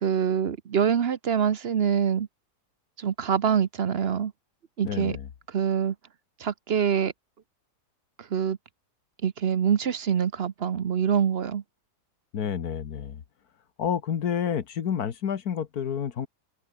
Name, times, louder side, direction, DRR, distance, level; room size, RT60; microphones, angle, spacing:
voice 1, 0.0-2.3 3.0-4.3 4.8-5.2 5.5-5.9 6.4-7.1 8.2-8.6 9.2-11.6, right 8 dB, 50° right, 0.9 m, -25 dB
voice 2, 4.8-5.3 12.3-13.2 13.8-16.3, left 8 dB, 70° left, 1.7 m, -29 dB
omnidirectional pair, 1.7 m